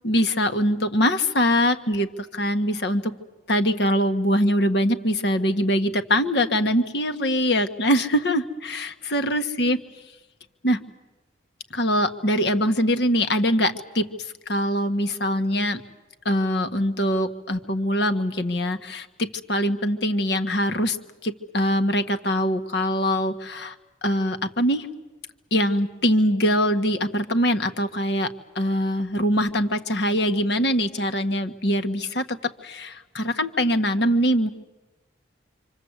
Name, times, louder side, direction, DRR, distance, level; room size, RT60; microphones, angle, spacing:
voice 1, 0.0-3.1 3.5-9.8 10.6-10.8 11.7-14.1 14.5-15.8 16.2-21.0 21.2-23.7 24.0-24.9 25.5-34.5, equal, 60° left, 8 dB, 1.5 m, -23 dB
26.5 x 26.5 x 8.1 m, 1.1 s
head